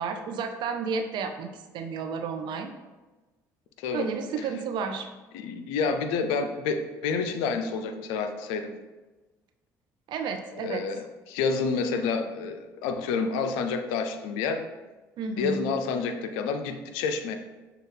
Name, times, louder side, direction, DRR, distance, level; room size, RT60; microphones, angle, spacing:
voice 1, 0.0-2.7 3.9-5.1 10.1-10.9 15.2-15.6, right 5 dB, 65° right, 6 dB, 0.5 m, -32 dB
voice 2, 3.8-4.1 4.4-4.5 5.3-8.7 10.6-14.7 15.4-17.4, left 5 dB, 80° left, 7 dB, 0.4 m, -29 dB
6.4 x 2.3 x 3.2 m, 1.2 s
hypercardioid pair, 60°, 9 cm